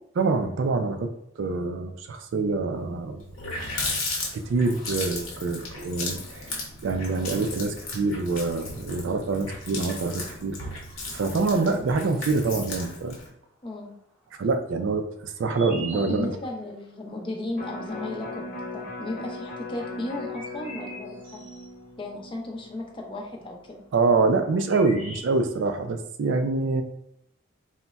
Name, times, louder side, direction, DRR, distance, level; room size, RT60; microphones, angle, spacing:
voice 1, 0.2-1.1 1.4-3.2 4.3-6.6 6.8-10.6 11.1-13.2 14.4-16.3 23.9-26.8, right 3 dB, 65° right, 7 dB, 0.3 m, -25 dB
Water tap faucet, 2.8-2.9 3.2-13.3, left 3 dB, 80° left, 0.8 m, -35 dB
voice 2, 13.6-13.9 15.9-18.4 18.7-21.4 22.0-23.8, left 2 dB, 25° left, 1 dB, 0.5 m, -35 dB
sound 1, 15.3-16.6 18.6-18.7 20.0-21.7 24.1-24.2 24.4-25.7, right 1 dB, 10° right, 0.7 m, -42 dB
Electric guitar, 17.5-23.8 24.2-24.3, left 2 dB, 50° left, 0.9 m, -39 dB
3.9 x 2.1 x 2.2 m, 0.78 s
head